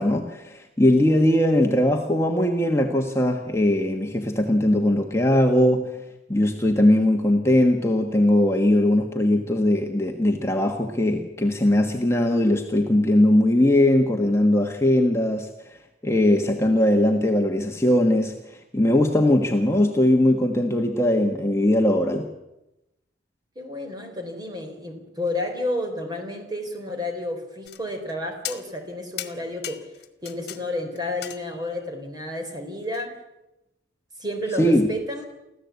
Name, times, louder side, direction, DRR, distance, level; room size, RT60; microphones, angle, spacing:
voice 1, 0.0-6.0 6.3-15.5 16.0-22.3 34.6-34.9, left 1 dB, 15° left, 2 dB, 1.4 m, -20 dB
voice 2, 23.6-29.9 30.2-33.1 34.2-35.2, left 1 dB, 20° right, 4 dB, 3.8 m, -31 dB
sound 1, 27.7-28.1 28.4-28.9 29.2-30.6 31.0-31.8 32.9-33.1, left 11 dB, 60° left, 1.6 m, -37 dB
24.5 x 15.0 x 8.3 m, 0.94 s
head